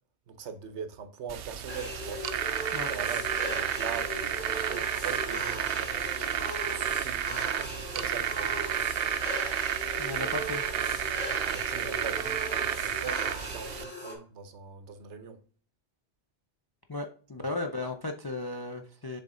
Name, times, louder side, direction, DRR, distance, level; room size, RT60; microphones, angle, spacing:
voice 1, 0.3-2.2 2.9-6.3 6.6-8.5 11.5-15.4, right 6 dB, 80° right, 1.1 m, -41 dB
sound 1, 1.3-13.8, right 9 dB, 65° right, 0.7 m, -31 dB
sound 2, 1.7-14.1, equal, 10° left, 1.5 m, -39 dB
voice 2, 10.0-10.6 16.9-19.2, left 2 dB, 35° left, 0.4 m, -35 dB
6.8 x 4.0 x 3.7 m
omnidirectional pair, 1.1 m